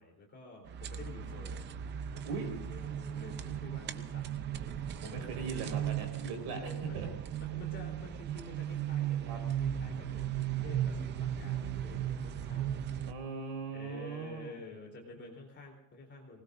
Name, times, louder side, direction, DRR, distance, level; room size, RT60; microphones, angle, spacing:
voice 1, 0.0-1.6 2.1-4.3 5.1-5.8 6.5-7.1 7.4-12.8 13.7-16.4, left 2 dB, 25° left, 1 dB, 3.8 m, -49 dB
sound 1, 0.6-13.1, right 10 dB, 25° right, 0.5 m, -36 dB
voice 2, 5.0-7.1 9.3-9.4 13.1-14.6, right 4 dB, 55° right, 3 dB, 4.6 m, -40 dB
24.0 x 20.0 x 2.6 m, 0.82 s
cardioid pair, 175°, 46 cm